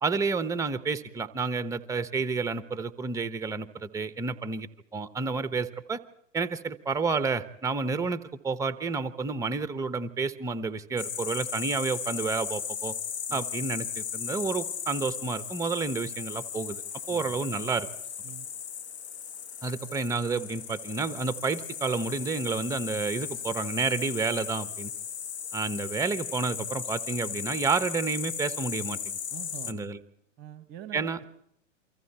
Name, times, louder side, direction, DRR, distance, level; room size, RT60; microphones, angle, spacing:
voice 1, 0.0-6.0 6.3-12.9 13.3-16.8 17.1-17.9 19.6-24.9 25.5-29.2 29.7-30.0 30.9-31.2, right 4 dB, 10° right, 13 dB, 1.1 m, -30 dB
sound 1, 11.0-29.7, left 8 dB, 55° left, 2.0 m, -36 dB
voice 2, 29.3-29.8 30.4-31.2, right 12 dB, 25° right, 11 dB, 1.5 m, -45 dB
28.5 x 25.0 x 4.4 m, 0.70 s
figure-of-eight pair, 110°, 38 cm